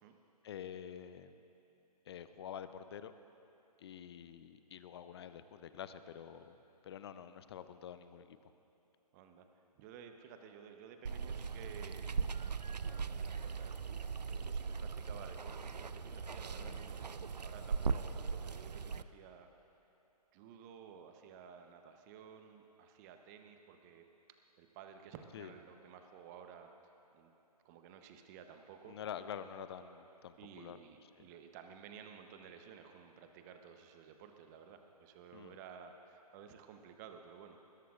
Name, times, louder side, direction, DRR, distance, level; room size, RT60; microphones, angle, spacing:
voice 1, 0.4-1.3 2.1-3.1 3.8-6.6 6.8-8.4 16.6-16.8 25.3-25.5 28.8-30.8 35.3-35.6, left 9 dB, 40° left, 12 dB, 0.6 m, -47 dB
voice 2, 9.1-9.5 9.8-12.2 12.9-19.5 20.3-24.0 24.6-27.3 27.6-29.0 30.4-37.7, right 7 dB, 25° right, 6 dB, 0.9 m, -54 dB
Water, 11.0-19.0, right 5 dB, 90° right, 0.5 m, -39 dB
21.0 x 17.0 x 2.5 m, 2.9 s
figure-of-eight pair, 135°, 21 cm